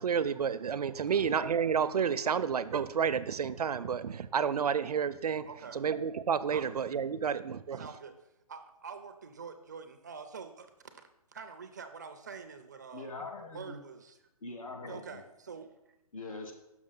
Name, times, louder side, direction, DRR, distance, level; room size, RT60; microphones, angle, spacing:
voice 1, 0.0-5.5 5.7-7.8, right 7 dB, 85° right, 13 dB, 0.5 m, -30 dB
voice 2, 5.5-5.8 6.5-6.7 7.7-11.0 11.3-13.1 13.5-14.2 14.9-15.9, right 5 dB, 30° right, 8 dB, 0.4 m, -46 dB
voice 3, 12.9-13.7 14.4-15.2 16.1-16.5, left 3 dB, 65° left, 3 dB, 1.4 m, -42 dB
6.2 x 6.1 x 3.8 m, 0.91 s
hypercardioid pair, 165°, 19 cm